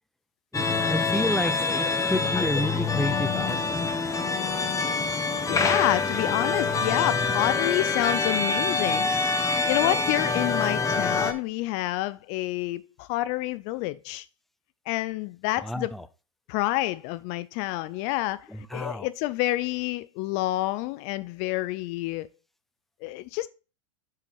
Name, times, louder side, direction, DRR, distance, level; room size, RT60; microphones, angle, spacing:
sound 1, 0.5-11.3, left 4 dB, 20° left, 1.2 m, -26 dB
voice 1, 0.5-3.8 15.6-16.1 18.5-19.1, left 1 dB, ahead, 0.6 m, -30 dB
voice 2, 5.5-9.1 9.7-14.3 14.9-15.9 16.5-18.4 18.7-22.3 23.0-23.5, left 17 dB, 45° left, 0.4 m, -28 dB
7.6 x 6.0 x 4.2 m
hypercardioid pair, 105°, 17 cm